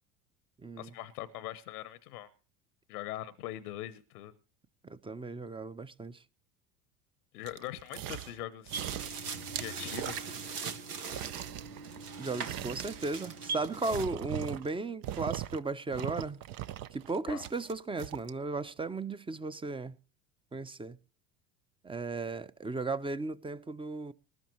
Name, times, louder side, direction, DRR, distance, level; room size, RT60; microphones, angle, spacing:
voice 1, 0.8-2.3 2.9-4.3 7.3-9.1 9.5-10.2 17.3-17.5, left 13 dB, 80° left, 1.0 m, -42 dB
voice 2, 4.8-6.2 12.2-16.4 16.9-19.9 20.5-21.0 21.8-24.1, right 3 dB, 10° right, 0.8 m, -36 dB
sound 1, 7.4-8.4 8.7-10.8 11.0-14.8 15.0-15.6 15.9-18.3 18.8-18.9, right 13 dB, 50° right, 0.8 m, -40 dB
sound 2, 8.7-14.0, right 5 dB, 85° right, 1.4 m, -40 dB
20.5 x 11.5 x 3.1 m
hypercardioid pair, 75°, 45 cm